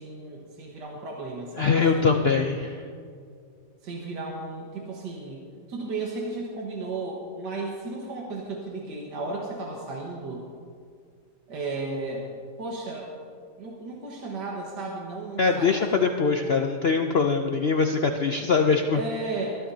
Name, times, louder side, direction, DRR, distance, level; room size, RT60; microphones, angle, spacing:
voice 1, 0.0-2.5 3.8-5.4 5.7-10.5 11.5-12.3 12.6-13.2 13.6-16.6 18.9-19.7, right 3 dB, 75° right, -2 dB, 2.0 m, -34 dB
voice 2, 1.6-2.8 15.4-19.0, left 5 dB, 80° left, 4 dB, 0.5 m, -22 dB
22.5 x 12.5 x 2.8 m, 2.2 s
omnidirectional pair, 1.9 m